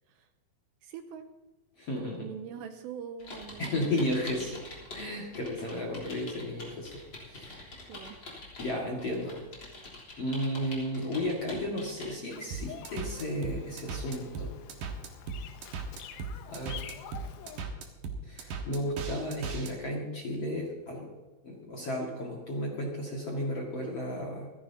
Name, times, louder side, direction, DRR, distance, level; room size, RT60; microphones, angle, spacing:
voice 1, 0.8-1.3 2.2-4.5 7.9-8.2, right 7 dB, 80° right, 7 dB, 2.7 m, -44 dB
voice 2, 1.8-2.3 3.6-4.6 4.9-7.0 7.3-7.8 8.6-9.4 10.2-14.5 16.5-16.8 18.2-21.1 21.4-24.5, left 1 dB, 50° left, -2 dB, 2.0 m, -34 dB
sound 1, 3.2-5.1 5.3-12.1, left 2 dB, 25° left, 3.5 m, -45 dB
Bird vocalization bird call bird song, 12.3-17.7, left 9 dB, 80° left, 3.4 m, -48 dB
sound 2, 12.5-19.7, right 4 dB, 60° right, 2.7 m, -37 dB
27.0 x 11.0 x 2.8 m, 1.2 s
omnidirectional pair, 5.4 m